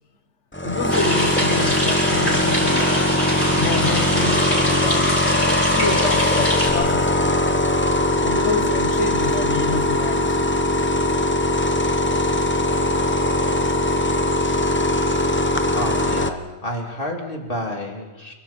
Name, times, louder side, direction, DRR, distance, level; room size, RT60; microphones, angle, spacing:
sound 1, 0.5-16.3, left 1 dB, 10° left, 1.0 m, -20 dB
voice 1, 0.6-3.1 3.6-5.2 5.7-7.5 8.2-10.6, left 4 dB, 85° left, 9 dB, 1.7 m, -28 dB
sound 2, 0.9-6.7, equal, 35° left, 7.8 m, -24 dB
voice 2, 15.7-18.3, left 1 dB, 50° left, 0 dB, 3.4 m, -30 dB
29.0 x 24.0 x 4.5 m, 1.2 s
omnidirectional pair, 1.2 m